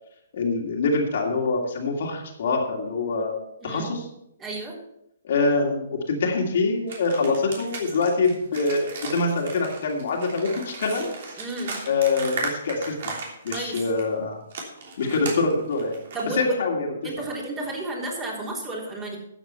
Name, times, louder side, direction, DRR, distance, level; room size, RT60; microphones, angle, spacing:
voice 1, 0.3-3.4 3.6-4.1 5.2-11.1 11.9-13.1 13.4-14.4 15.0-16.0 16.3-16.9, left 3 dB, 55° left, 0 dB, 2.5 m, -24 dB
voice 2, 4.4-4.8 11.4-11.8 13.5-13.8 16.1-16.5 17.0-19.2, right 2 dB, 20° right, -3 dB, 3.7 m, -32 dB
sound 1, 6.9-14.1 14.5-16.3, right 4 dB, 55° right, 3.2 m, -36 dB
13.0 x 8.0 x 4.4 m, 0.79 s
figure-of-eight pair, 130°, 0 cm